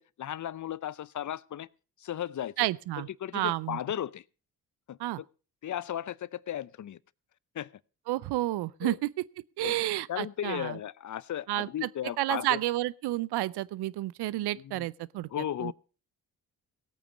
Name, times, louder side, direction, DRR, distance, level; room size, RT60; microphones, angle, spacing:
voice 1, 0.0-1.7 2.0-2.7 3.0-4.2 4.9-5.0 5.6-7.0 7.5-7.7 8.8-9.0 9.6-9.8 10.1-12.6 14.3-14.9 15.3-15.7, left 11 dB, 50° left, 0.6 m, -35 dB
voice 2, 2.6-3.1 3.3-3.8 5.0-5.2 8.1-9.1 9.6-10.8 11.5-11.9 12.2-15.3 15.6-15.7, right 16 dB, 85° right, 0.6 m, -30 dB
17.0 x 8.7 x 5.0 m
supercardioid pair, 55°, 39 cm